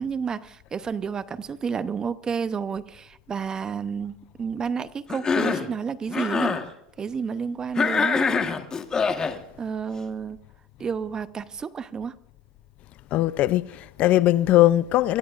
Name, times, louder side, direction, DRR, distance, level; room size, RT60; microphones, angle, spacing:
voice 1, 0.0-6.6 7.0-8.4 9.6-10.4 10.8-12.1, right 6 dB, 20° right, 0.7 m, -30 dB
Cough, 5.1-5.7 6.1-6.6 7.7-9.4, left 5 dB, 20° left, 1.3 m, -24 dB
voice 2, 13.1-15.2, left 14 dB, 45° left, 0.5 m, -20 dB
25.0 x 15.5 x 2.5 m
supercardioid pair, 130°, 3 cm